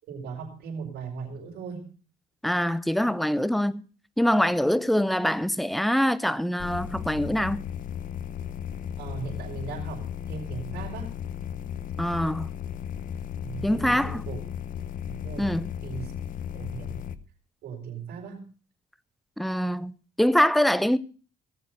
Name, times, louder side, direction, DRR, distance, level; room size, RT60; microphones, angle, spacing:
voice 1, 0.0-1.9 9.0-11.2 13.4-14.4 15.1-15.5 15.8-16.1 16.5-16.9 17.6-18.4, right 5 dB, 70° right, 5.1 m, -38 dB
voice 2, 2.4-3.8 4.2-7.7 12.0-12.5 13.6-14.3 15.4-15.7 19.4-21.0, equal, ahead, 0.6 m, -24 dB
sound 1, 6.6-17.2, left 9 dB, 55° left, 0.9 m, -35 dB
18.0 x 7.0 x 6.4 m
cardioid pair, 110°, 17 cm